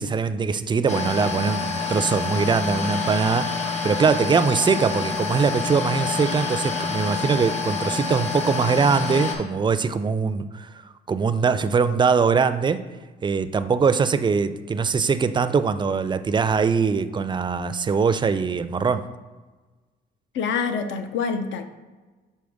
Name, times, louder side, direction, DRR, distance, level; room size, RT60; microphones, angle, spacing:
voice 1, 0.0-3.5 3.8-10.7 11.1-12.8 13.2-19.1, right 5 dB, 25° right, 12 dB, 0.3 m, -22 dB
sound 1, 0.9-9.3, left 5 dB, 35° left, 1.3 m, -27 dB
voice 2, 20.3-21.6, left 5 dB, 70° left, 8 dB, 0.7 m, -26 dB
6.3 x 4.2 x 3.5 m, 1.3 s
cardioid pair, 90°, 20 cm